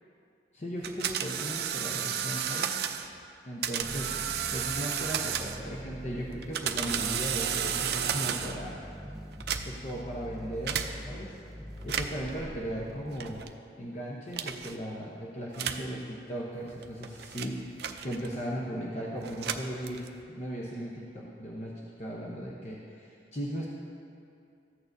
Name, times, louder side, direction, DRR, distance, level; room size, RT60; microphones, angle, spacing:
voice 1, 0.5-2.8 3.5-4.2 4.5-8.8 9.6-11.4 11.8-13.4 13.8-20.0 20.3-21.7 22.0-23.7, equal, 40° left, -4 dB, 0.8 m, -37 dB
sound 1, 0.8-3.1 3.6-5.7 6.3-8.7 9.3-9.9 10.7-10.9 11.8-12.3 13.2-13.5 14.3-14.7 15.5-15.9 16.7-18.4 19.2-20.2, right 8 dB, 60° right, 0.4 m, -33 dB
sound 2, 3.8-13.4, equal, ahead, 0.4 m, -43 dB
14.0 x 8.7 x 2.7 m, 2.5 s
head